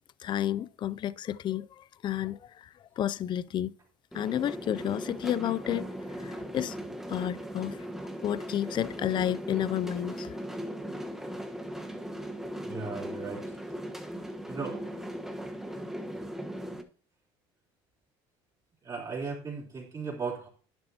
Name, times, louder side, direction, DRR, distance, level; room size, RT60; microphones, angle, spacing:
voice 1, 0.2-2.7 3.0-3.7 4.1-6.8 7.1-7.8 8.2-10.4, left 11 dB, 40° left, 0.4 m, -31 dB
sound 1, 4.1-16.8, equal, 5° right, 1.2 m, -38 dB
voice 2, 12.7-13.4 14.5-14.8 18.8-20.5, right 4 dB, 30° right, 3.6 m, -36 dB
11.0 x 9.7 x 2.9 m
cardioid pair, 110°, 12 cm